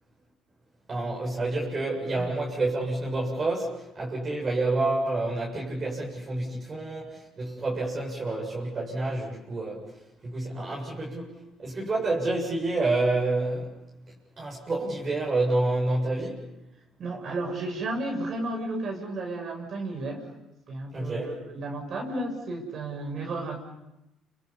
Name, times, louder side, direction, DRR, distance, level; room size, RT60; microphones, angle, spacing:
voice 1, 0.9-9.9 10.2-13.8 14.4-16.5 20.9-21.3, right 2 dB, 35° right, -3 dB, 7.2 m, -28 dB
voice 2, 17.0-20.3 20.7-23.6, right 2 dB, 55° right, 2 dB, 7.5 m, -33 dB
29.5 x 27.0 x 5.6 m, 0.89 s
hypercardioid pair, 65°, 0 cm